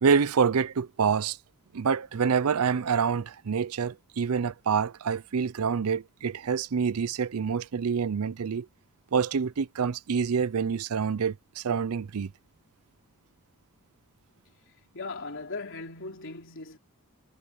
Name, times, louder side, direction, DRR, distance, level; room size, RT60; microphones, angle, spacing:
voice 1, 0.0-1.4 1.7-8.7 9.1-12.3, right 6 dB, 80° right, 0.5 m, -27 dB
voice 2, 14.7-16.8, left 3 dB, 60° left, 3.9 m, -39 dB
head